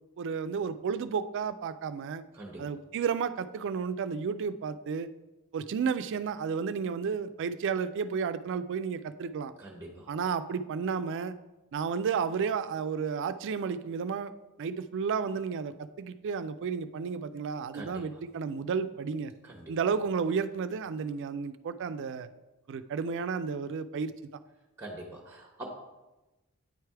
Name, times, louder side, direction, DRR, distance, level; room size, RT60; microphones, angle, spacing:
voice 1, 0.2-2.2 2.6-5.1 5.5-9.5 10.1-11.3 11.7-14.3 14.6-19.3 19.7-22.3 22.7-24.1, right 6 dB, 55° right, 12 dB, 0.3 m, -32 dB
voice 2, 2.3-2.7 9.6-10.1 17.7-18.2 19.4-19.7 24.8-25.7, right 1 dB, 10° right, 0 dB, 0.8 m, -44 dB
9.3 x 3.3 x 4.6 m, 1.1 s
head